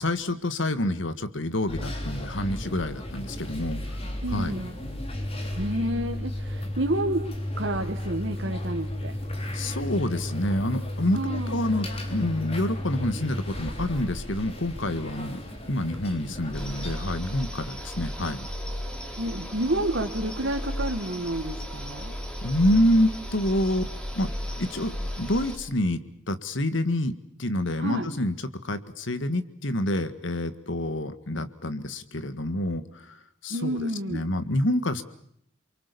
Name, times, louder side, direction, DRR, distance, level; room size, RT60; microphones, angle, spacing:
voice 1, 0.0-3.8 4.3-4.6 9.5-15.4 15.7-18.5 22.4-23.9 24.2-24.3 24.6-27.1 27.4-33.2 33.4-35.0, left 1 dB, 70° left, 11 dB, 1.8 m, -27 dB
sound 1, 1.7-17.0, left 1 dB, 30° left, 3.9 m, -34 dB
voice 2, 4.2-4.8 5.6-7.2 7.6-9.2 11.1-11.6 19.2-22.1 27.8-28.1 33.5-34.3, right 1 dB, 60° right, 4 dB, 1.9 m, -29 dB
sound 2, 16.5-25.6, equal, 5° left, 3.5 m, -35 dB
28.5 x 24.0 x 7.0 m, 0.69 s
head